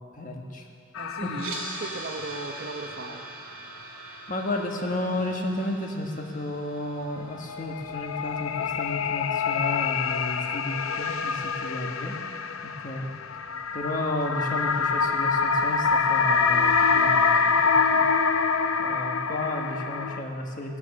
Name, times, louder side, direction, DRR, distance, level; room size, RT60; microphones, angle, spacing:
voice 1, 0.1-0.7 1.2-1.4 4.3-12.2 12.6-13.1 13.7-18.1 18.8-20.8, left 1 dB, 40° left, 1 dB, 1.5 m, -32 dB
sound 1, 0.9-2.5 2.9-3.0 7.3-20.2, left 5 dB, 85° left, 0.6 m, -25 dB
voice 2, 1.0-1.5 1.8-3.3, right 2 dB, 50° right, 4 dB, 1.0 m, -37 dB
sound 2, 1.3-11.4, right 3 dB, 85° right, 2.2 m, -43 dB
16.5 x 9.9 x 6.6 m, 2.6 s
head